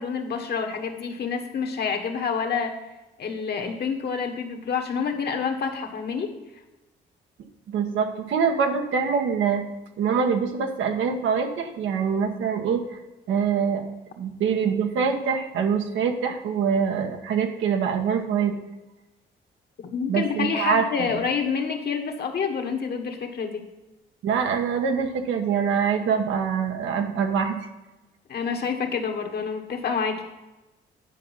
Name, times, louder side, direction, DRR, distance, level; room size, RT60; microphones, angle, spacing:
voice 1, 0.0-2.8 3.2-6.3 19.8-23.6 28.3-30.2, left 6 dB, 55° left, 4 dB, 1.5 m, -28 dB
voice 2, 7.7-9.6 10.0-13.0 13.3-18.6 20.1-21.1 24.2-27.6, right 6 dB, 80° right, 4 dB, 1.3 m, -24 dB
10.0 x 5.4 x 5.5 m, 1.1 s
cardioid pair, 90°, 20 cm